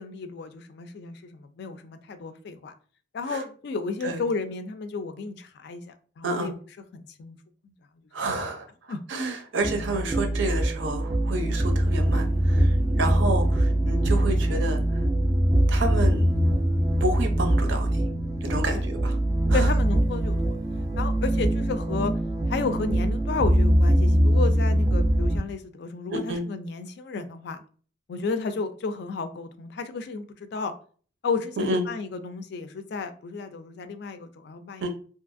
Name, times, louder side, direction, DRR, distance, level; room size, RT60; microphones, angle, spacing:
voice 1, 0.0-2.7 3.1-6.5 6.9-7.4 7.6-7.7 8.9-9.0 12.9-13.1 18.7-18.8 19.5-20.6 21.0-22.1 22.5-27.6 28.1-30.7 31.2-34.9, left 4 dB, 60° left, 10 dB, 0.3 m, -32 dB
voice 2, 8.1-8.7 9.1-14.8 15.7-16.3 17.0-18.0 18.4-19.2 19.5-19.7 26.1-26.4 31.6-31.9 34.8-34.9, right 2 dB, 75° right, 4 dB, 0.6 m, -29 dB
sound 1, 9.6-25.4, right 1 dB, 20° right, 0.3 m, -23 dB
2.8 x 2.3 x 2.5 m, 0.42 s
head